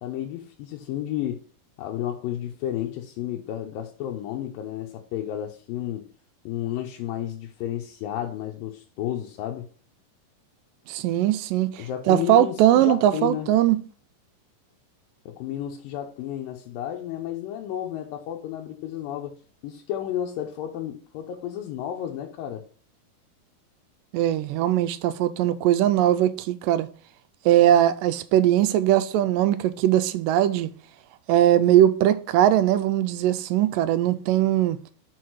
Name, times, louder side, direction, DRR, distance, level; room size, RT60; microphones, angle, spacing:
voice 1, 0.0-1.4 1.8-6.1 6.5-9.7 11.8-13.5 15.3-19.4 19.6-22.6, left 11 dB, 85° left, 2.5 m, -32 dB
voice 2, 10.9-13.8 24.1-26.9 27.5-30.7 31.3-34.8, right 12 dB, 80° right, 2.2 m, -20 dB
6.2 x 4.7 x 4.6 m
omnidirectional pair, 3.9 m